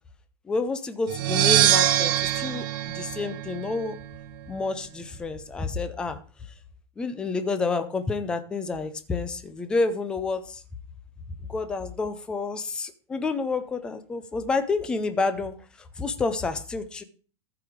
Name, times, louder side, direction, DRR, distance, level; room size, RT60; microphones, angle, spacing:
voice 1, 0.4-4.0 4.5-6.5 7.0-10.6 11.5-17.0, left 3 dB, 5° left, 9 dB, 0.5 m, -29 dB
sound 1, 1.1-3.9, right 12 dB, 45° right, 0.8 m, -23 dB
14.0 x 4.8 x 5.0 m, 0.41 s
supercardioid pair, 170°, 15 cm